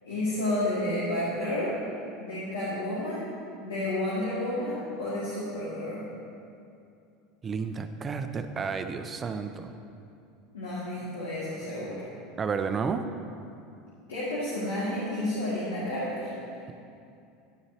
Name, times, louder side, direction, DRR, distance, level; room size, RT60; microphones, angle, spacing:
voice 1, 0.0-1.7 2.2-3.3 3.6-6.0 10.5-12.0 14.1-16.3, left 1 dB, 90° left, -9 dB, 2.1 m, -31 dB
voice 2, 7.4-9.7 12.4-13.1, right 5 dB, 30° right, 8 dB, 0.7 m, -31 dB
11.0 x 9.6 x 2.9 m, 2.6 s
hypercardioid pair, 85°, 0 cm